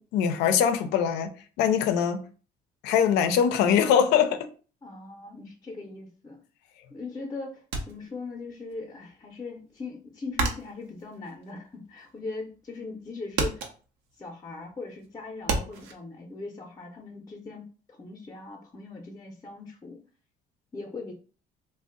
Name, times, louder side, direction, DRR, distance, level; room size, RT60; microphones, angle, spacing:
voice 1, 0.0-2.2 2.8-4.5, left 8 dB, 85° left, 0.5 m, -23 dB
voice 2, 4.8-6.4 6.9-13.6 14.2-20.0 20.7-21.1, left 3 dB, 20° left, 0.6 m, -40 dB
sound 1, 7.7-8.8 9.1-12.3 12.7-13.0 13.3-15.9, right 3 dB, 90° right, 0.6 m, -32 dB
2.5 x 2.1 x 3.7 m
cardioid pair, 110°, 17 cm